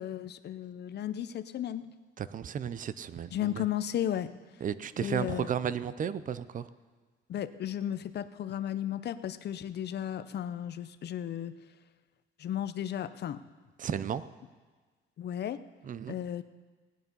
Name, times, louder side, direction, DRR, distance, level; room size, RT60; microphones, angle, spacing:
voice 1, 0.0-1.9 3.3-4.3 5.0-5.5 7.3-11.5 12.4-13.4 15.2-15.6 16.1-16.4, left 10 dB, 55° left, 12 dB, 0.6 m, -34 dB
voice 2, 2.2-3.6 4.6-6.7 13.8-14.2 15.8-16.2, right 8 dB, 40° right, 15 dB, 0.5 m, -34 dB
17.0 x 9.4 x 5.4 m, 1.4 s
cardioid pair, 130°, 21 cm